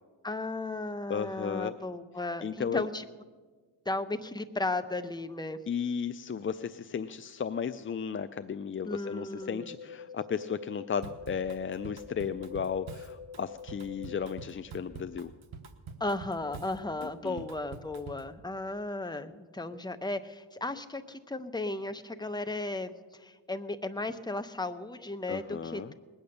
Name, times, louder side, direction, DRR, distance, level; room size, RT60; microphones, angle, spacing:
voice 1, 0.2-3.0 3.9-5.6 8.8-9.7 16.0-25.9, left 2 dB, 10° left, 8 dB, 0.8 m, -35 dB
voice 2, 1.1-1.7 2.4-2.9 5.7-15.3 17.2-17.4 25.3-25.9, left 7 dB, 30° left, 10 dB, 0.3 m, -34 dB
sound 1, 9.4-14.4, left 6 dB, 55° left, 0.9 m, -46 dB
Drum kit / Drum, 11.0-18.3, right 5 dB, 75° right, 1.2 m, -46 dB
20.0 x 8.7 x 6.6 m, 1.4 s
cardioid pair, 85°, 49 cm